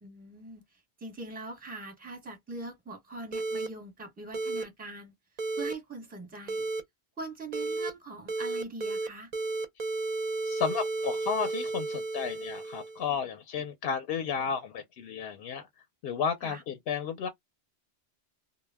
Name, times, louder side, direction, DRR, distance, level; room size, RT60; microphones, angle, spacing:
voice 1, 0.0-0.6 1.0-5.1 5.6-6.7 7.2-9.3 16.4-16.6, right 2 dB, 10° right, 0.7 m, -42 dB
sound 1, 3.3-3.7 4.3-4.6 5.4-5.7 6.5-6.8 7.5-7.9 8.3-9.1 9.3-13.1, right 3 dB, 50° right, 0.5 m, -33 dB
voice 2, 10.4-15.7 16.0-17.3, left 6 dB, 65° left, 0.7 m, -33 dB
2.1 x 2.1 x 3.3 m
omnidirectional pair, 1.2 m